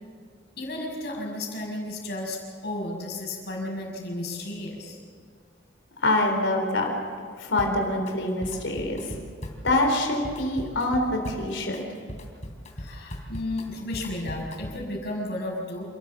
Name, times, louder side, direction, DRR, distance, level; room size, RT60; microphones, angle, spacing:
voice 1, 0.6-5.0 12.8-15.8, left 1 dB, 60° left, -2 dB, 6.1 m, -33 dB
voice 2, 6.0-6.9 7.4-9.1 9.6-11.8, left 2 dB, 85° left, 2 dB, 3.9 m, -25 dB
Drum kit, 7.6-8.1 8.4-14.9, equal, 40° left, 3.1 m, -39 dB
28.0 x 14.0 x 7.5 m, 2.1 s
head